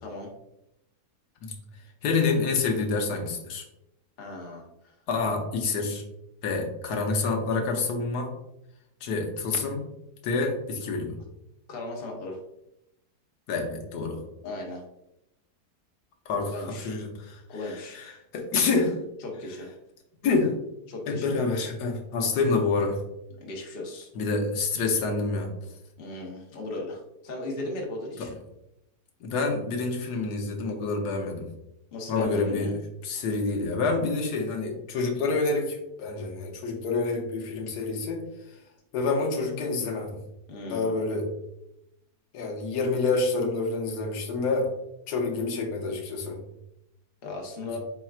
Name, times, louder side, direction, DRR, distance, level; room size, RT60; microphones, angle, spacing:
voice 1, 0.0-0.3 4.2-4.9 11.7-12.4 14.4-14.8 16.5-16.9 17.5-18.0 19.2-19.7 20.9-21.3 23.4-24.1 26.0-28.3 31.9-32.8 40.5-41.0 47.2-47.8, left 2 dB, 45° left, 0 dB, 1.0 m, -36 dB
voice 2, 2.0-3.6 5.1-6.0 6.4-8.3 9.0-9.8 10.2-11.2 13.5-14.2 16.3-19.0 20.2-20.6 21.1-23.0 24.1-25.5 28.2-28.3 29.2-31.5 32.1-38.2 38.9-40.2 40.7-41.3 42.3-44.7 45.1-46.4, left 3 dB, 85° left, 2 dB, 1.3 m, -27 dB
4.5 x 4.3 x 2.4 m, 0.85 s
omnidirectional pair, 1.7 m